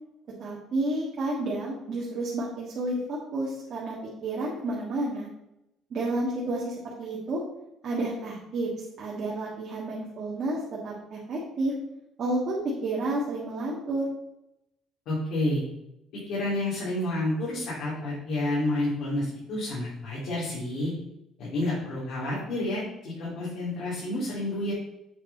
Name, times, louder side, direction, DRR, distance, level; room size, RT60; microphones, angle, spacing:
voice 1, 0.4-4.0 4.2-5.3 5.9-7.4 7.8-8.7 9.0-10.6 10.8-11.7 12.2-14.1, right 2 dB, 40° right, -5 dB, 1.7 m, -30 dB
voice 2, 15.1-15.6 16.3-20.9 21.4-24.7, left 1 dB, 65° left, -8 dB, 3.0 m, -29 dB
7.9 x 5.3 x 4.2 m, 0.85 s
cardioid pair, 155°, 0 cm